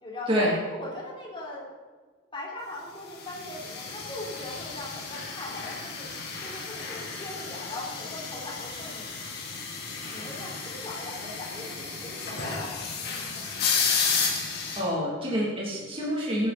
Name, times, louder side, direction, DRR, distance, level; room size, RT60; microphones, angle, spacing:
voice 1, 0.0-1.7 2.3-6.1 6.4-9.1 10.1-13.1, left 2 dB, 25° left, -4 dB, 3.8 m, -40 dB
sound 1, 3.2-14.8, left 5 dB, 55° left, 2.9 m, -32 dB
voice 2, 14.8-16.5, equal, 25° right, -5 dB, 3.0 m, -27 dB
18.5 x 10.5 x 4.3 m, 1.4 s
head